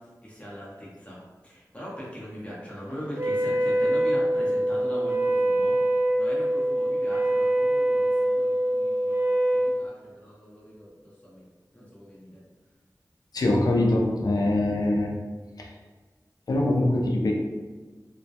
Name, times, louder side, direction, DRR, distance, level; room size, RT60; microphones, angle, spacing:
voice 1, 0.2-1.2 1.4-5.8 6.2-10.9 11.2-11.4 11.7-12.4, equal, 20° left, -7 dB, 0.8 m, -40 dB
Wind instrument woodwind instrument, 3.1-9.8, right 1 dB, 30° right, 0.4 m, -24 dB
voice 2, 13.3-15.1 15.6-15.7 16.5-17.3, left 1 dB, 65° left, 0 dB, 0.3 m, -23 dB
2.1 x 2.1 x 2.7 m, 1.3 s
wide cardioid pair, 80°, 7 cm